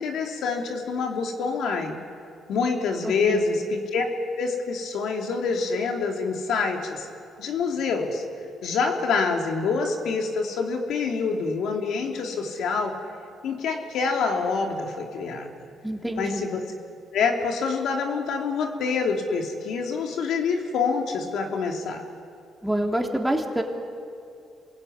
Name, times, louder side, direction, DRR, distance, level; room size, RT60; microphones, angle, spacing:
voice 1, 0.0-2.0 2.5-4.0 4.4-7.1 7.4-8.2 8.6-13.0 13.4-15.5 16.2-16.6 17.1-22.0, left 4 dB, 75° left, 2 dB, 3.1 m, -26 dB
voice 2, 15.8-16.4 22.6-23.6, right 1 dB, 5° right, 1 dB, 3.2 m, -26 dB
28.0 x 22.0 x 9.8 m, 2.4 s
cardioid pair, 90°, 0 cm